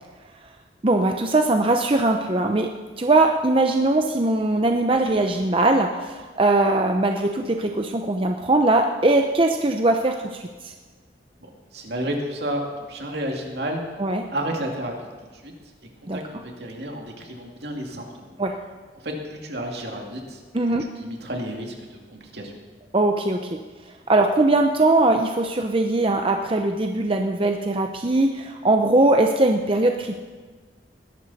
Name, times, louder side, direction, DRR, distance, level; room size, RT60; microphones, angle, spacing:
voice 1, 0.8-10.7 14.0-14.2 16.1-16.2 18.4-18.6 20.5-20.8 22.9-23.6 24.1-30.2, right 2 dB, 30° right, 4 dB, 0.7 m, -21 dB
voice 2, 11.4-14.0 14.3-14.9 15.3-15.5 16.1-18.3 19.0-20.4 21.0-22.5, right 1 dB, 70° right, 1 dB, 2.4 m, -31 dB
20.5 x 11.5 x 4.2 m, 1.4 s
head